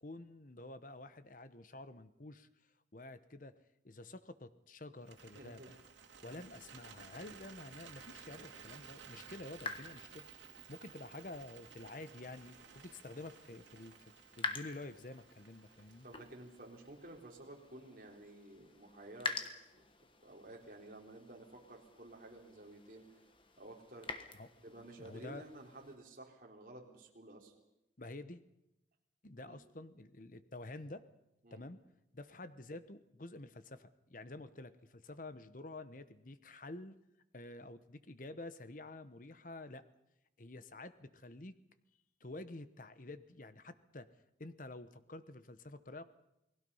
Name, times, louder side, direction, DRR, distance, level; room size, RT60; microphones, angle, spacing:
voice 1, 0.0-2.5 2.9-3.5 3.8-5.8 6.2-10.3 10.7-14.0 14.4-16.1 24.3-24.5 25.0-25.4 28.0-28.4 29.2-31.0 31.5-31.8 32.1-37.0 37.3-39.8 40.4-41.5 42.2-44.1 44.4-46.0, left 2 dB, 45° left, 12 dB, 1.0 m, -49 dB
Bird, 5.0-17.2, right 6 dB, 85° right, 2.8 m, -56 dB
voice 2, 5.3-5.8 16.0-19.4 19.8-19.9 20.2-23.1 23.6-24.1 24.6-27.5 29.4-29.5 31.4-31.7, right 1 dB, 45° right, 0 dB, 3.8 m, -53 dB
sound 1, 8.1-26.0, left 4 dB, 25° left, 1.4 m, -49 dB
29.0 x 19.5 x 5.6 m, 0.89 s
head